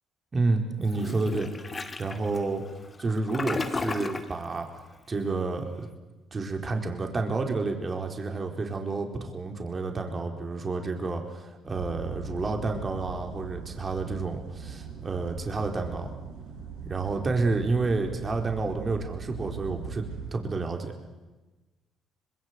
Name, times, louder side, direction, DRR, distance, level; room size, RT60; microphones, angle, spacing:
voice 1, 0.3-2.6 3.0-4.7 5.1-5.9 6.3-16.1 16.8-20.9, right 3 dB, 35° right, 4 dB, 4.3 m, -30 dB
Toilet flush, 0.9-4.4, left 3 dB, 30° left, 2.3 m, -34 dB
sound 1, 11.7-20.3, right 6 dB, 90° right, 5.0 m, -40 dB
25.5 x 21.5 x 8.3 m, 1.1 s
supercardioid pair, 65°, 0 cm